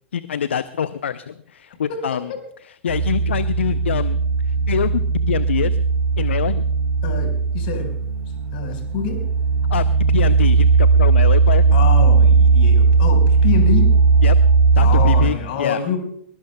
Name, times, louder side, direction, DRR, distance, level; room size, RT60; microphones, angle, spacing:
voice 1, 0.1-2.3 2.8-4.2 4.4-5.8 6.2-6.6 9.7-11.7 14.2-14.4 14.7-15.8, left 8 dB, 70° left, 15 dB, 0.6 m, -25 dB
voice 2, 1.9-2.4 7.0-8.0 8.5-9.2 11.7-13.9 14.8-16.0, left 6 dB, 50° left, 4 dB, 4.7 m, -26 dB
sound 1, 2.9-15.2, right 4 dB, 60° right, 4.2 m, -17 dB
22.5 x 21.5 x 2.3 m, 0.71 s
figure-of-eight pair, 100°, 6 cm